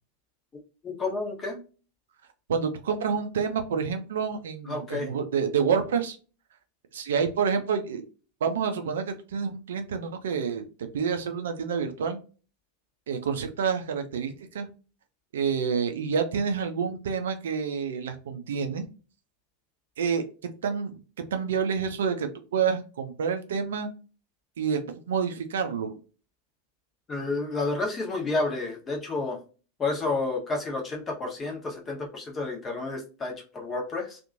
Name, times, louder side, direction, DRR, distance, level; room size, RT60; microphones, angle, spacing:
voice 1, 0.8-1.6 4.6-5.1 27.1-29.4 29.8-34.2, left 3 dB, 20° left, 0 dB, 1.0 m, -30 dB
voice 2, 2.5-6.2 6.9-8.0 8.4-10.6 10.9-12.2 13.1-14.7 15.3-18.9 20.0-20.2 20.6-20.9 21.3-23.9 24.6-25.9, right 6 dB, 60° right, 7 dB, 0.5 m, -28 dB
2.9 x 2.5 x 2.4 m, 0.35 s
figure-of-eight pair, 90°, 0 cm